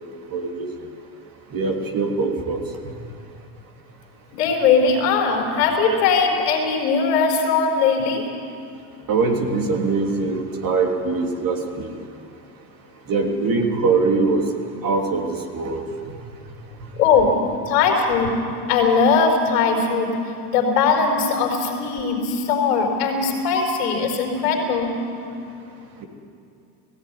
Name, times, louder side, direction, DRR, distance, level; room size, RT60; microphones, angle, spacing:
voice 1, 0.3-0.7 1.5-2.6 9.1-11.9 13.1-14.4 14.8-15.8, right 4 dB, 45° right, 2 dB, 3.3 m, -22 dB
voice 2, 4.3-8.3 17.0-17.4 17.6-25.0, left 5 dB, 80° left, 1 dB, 4.5 m, -20 dB
17.5 x 17.5 x 9.6 m, 2.5 s
hypercardioid pair, 85°, 47 cm